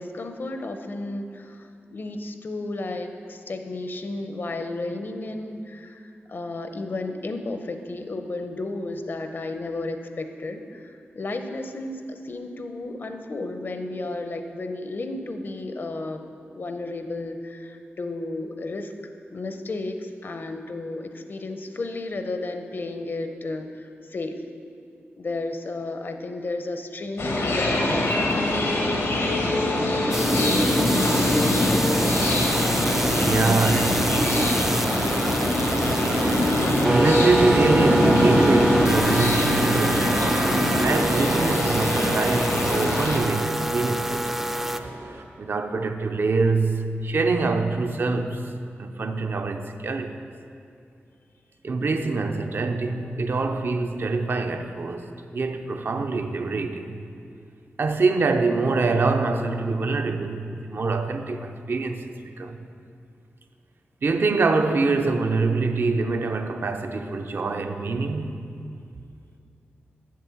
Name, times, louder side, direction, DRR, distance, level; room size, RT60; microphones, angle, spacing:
voice 1, 0.0-16.2 16.5-18.9 19.3-24.4 25.2-28.9 51.8-52.1, left 2 dB, 50° left, 0.7 m, -33 dB
sound 1, 27.2-43.2, left 1 dB, 85° left, 1.4 m, -23 dB
sound 2, 30.1-44.8, right 1 dB, 5° right, 0.4 m, -27 dB
sound 3, 32.0-45.2, right 2 dB, 85° right, 0.9 m, -30 dB
voice 2, 33.2-34.4 36.8-40.5 40.8-44.3 45.4-48.4 48.8-50.1 51.6-56.9 57.8-62.6 64.0-68.4, right 3 dB, 55° right, 0.6 m, -25 dB
7.9 x 7.6 x 6.9 m
wide cardioid pair, 135°, 4 cm